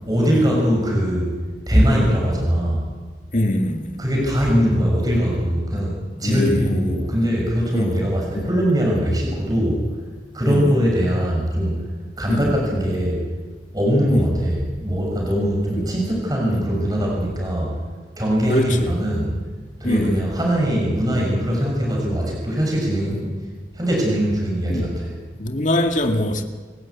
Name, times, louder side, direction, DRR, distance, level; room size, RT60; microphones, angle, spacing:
voice 1, 0.1-1.3 1.7-2.9 4.0-10.0 10.3-11.8 12.2-13.2 13.7-17.8 18.2-19.3 19.8-23.3 23.7-25.1, equal, 20° right, 6.7 m, -21 dB
voice 2, 3.3-4.0 6.2-7.2 7.7-8.0 8.3-8.5 10.5-10.7 12.3-12.5 14.1-14.3 15.8-15.9 16.5-16.6 18.5-18.9 19.8-20.3 23.1-23.2 24.7-24.9 25.4-26.4, left 1 dB, 45° left, 2.1 m, -23 dB
28.5 x 14.5 x 8.6 m
head